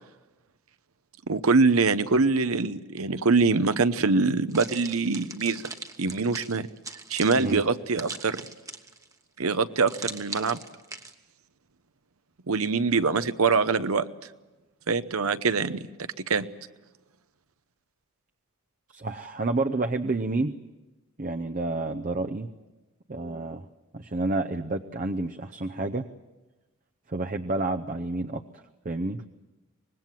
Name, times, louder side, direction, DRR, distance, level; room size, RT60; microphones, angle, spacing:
voice 1, 1.3-5.6 6.0-6.7 7.1-8.4 9.4-10.6 12.5-14.1 14.9-15.8 16.3-16.5, right 4 dB, 85° right, 12 dB, 0.9 m, -24 dB
sound 1, 4.5-9.1 9.9-11.1, right 4 dB, 15° right, 1.1 m, -40 dB
voice 2, 18.9-20.5 21.2-22.5 23.1-23.7 23.9-26.1 27.1-28.4 28.8-29.2, right 2 dB, 40° right, 6 dB, 0.7 m, -29 dB
25.0 x 20.0 x 7.6 m, 1.1 s
head